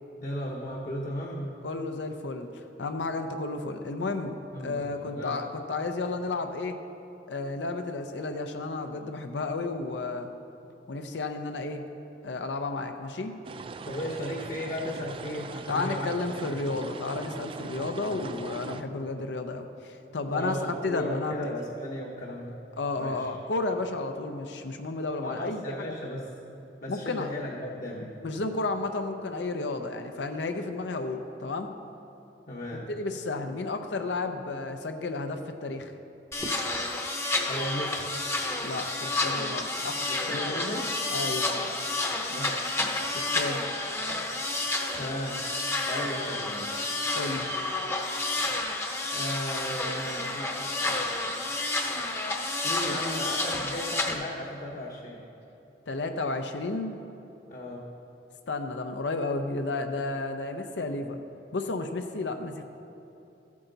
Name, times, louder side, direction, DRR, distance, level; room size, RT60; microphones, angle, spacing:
voice 1, 0.2-1.6 4.5-5.4 13.9-16.6 20.3-22.6 23.0-23.3 25.2-26.3 26.8-28.1 32.5-32.9 37.5-38.2 40.1-40.9 42.3-42.9 44.7-45.4 45.9-46.7 49.1-51.0 52.6-55.2 57.5-57.9, equal, 45° left, -3 dB, 1.0 m, -36 dB
voice 2, 1.6-6.8 7.3-10.3 10.9-11.8 12.2-13.3 15.7-20.6 20.8-21.5 22.8-25.9 26.9-27.3 28.2-31.7 32.9-35.9 38.6-40.6 41.1-41.5 43.2-43.6 47.1-47.5 55.9-57.0 58.5-61.2 61.5-62.6, left 3 dB, 75° left, 6 dB, 0.6 m, -32 dB
sound 1, 13.4-18.8, right 3 dB, 30° right, 0.3 m, -40 dB
sound 2, 36.3-54.1, left 2 dB, 15° left, 0.8 m, -30 dB
14.0 x 8.5 x 3.9 m, 2.8 s
head